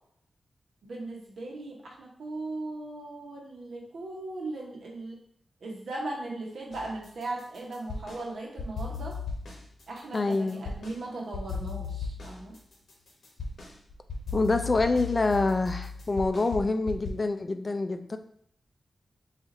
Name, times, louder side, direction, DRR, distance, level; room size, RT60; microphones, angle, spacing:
voice 1, 0.8-5.2 5.6-9.1 9.9-12.6, right 2 dB, 80° right, -2 dB, 0.9 m, -38 dB
sound 1, 6.7-8.2 8.6-11.0 11.3-17.1, left 4 dB, 75° left, 0.8 m, -37 dB
voice 2, 10.1-10.6 14.3-18.2, left 3 dB, 40° left, 8 dB, 0.3 m, -26 dB
4.0 x 2.4 x 2.5 m, 0.69 s
cardioid pair, 60°, 0 cm